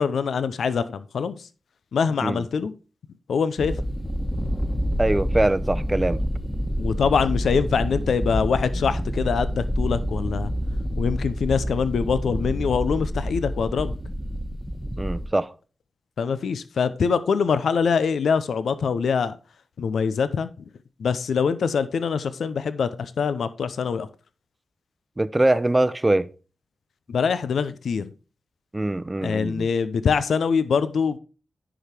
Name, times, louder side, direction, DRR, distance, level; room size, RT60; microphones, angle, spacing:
voice 1, 0.0-1.3 1.9-2.7 3.3-3.7 6.8-10.5 11.0-13.9 16.2-19.3 19.8-20.5 21.0-24.1 27.1-28.1 29.2-31.2, left 6 dB, 80° left, 0.6 m, -24 dB
sound 1, 3.6-15.3, equal, 5° left, 1.3 m, -28 dB
voice 2, 5.0-6.2 15.0-15.5 25.2-26.3 28.7-29.7, right 1 dB, 20° right, 0.7 m, -22 dB
10.0 x 4.9 x 4.3 m
cardioid pair, 45°, 0 cm